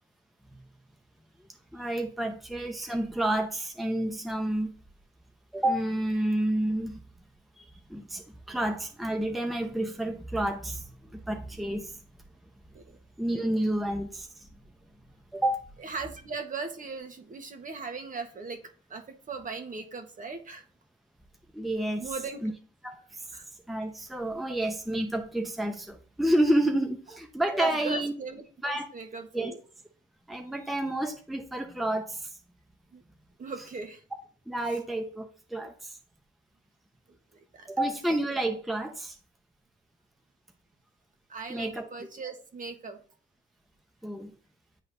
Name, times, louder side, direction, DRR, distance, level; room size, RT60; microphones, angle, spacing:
voice 1, 1.7-4.7 5.5-7.0 7.6-7.7 7.9-12.0 13.2-14.5 15.3-15.6 21.5-22.0 22.4-22.5 22.8-23.2 23.7-28.1 28.6-28.9 29.3-29.5 30.3-32.3 34.5-36.0 37.7-39.2 41.5-41.9 44.0-44.3, right 1 dB, ahead, 0.7 m, -29 dB
voice 2, 15.8-20.6 22.0-22.4 23.3-23.5 27.6-29.6 30.6-30.8 32.9-33.0 33.4-34.0 37.1-37.7 41.3-43.0, right 4 dB, 40° right, 1.3 m, -39 dB
9.4 x 4.0 x 2.7 m
cardioid pair, 90°, 20 cm